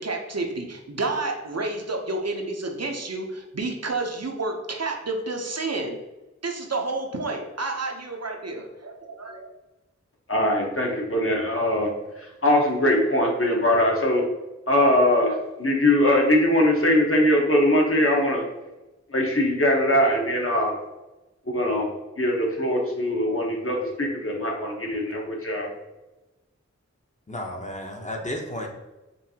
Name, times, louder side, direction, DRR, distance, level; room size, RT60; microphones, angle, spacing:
voice 1, 0.0-6.0 6.4-9.5, right 3 dB, 60° right, 2 dB, 0.7 m, -30 dB
voice 2, 10.3-14.2 14.7-18.4 19.1-20.7 21.5-21.9 22.2-25.7, left 1 dB, 50° left, -1 dB, 1.0 m, -21 dB
voice 3, 27.3-28.7, left 1 dB, 25° left, 2 dB, 0.8 m, -32 dB
5.4 x 2.6 x 2.8 m, 1.1 s
wide cardioid pair, 45°, 30 cm